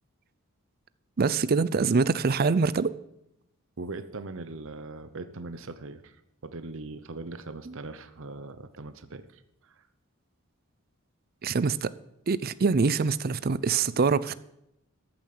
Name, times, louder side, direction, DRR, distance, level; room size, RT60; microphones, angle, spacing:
voice 1, 1.2-2.9 7.7-7.8 11.4-11.9 12.3-14.4, right 4 dB, 45° right, 0.5 m, -24 dB
voice 2, 3.8-9.8, right 3 dB, 60° right, 0.8 m, -40 dB
14.0 x 7.2 x 7.8 m
head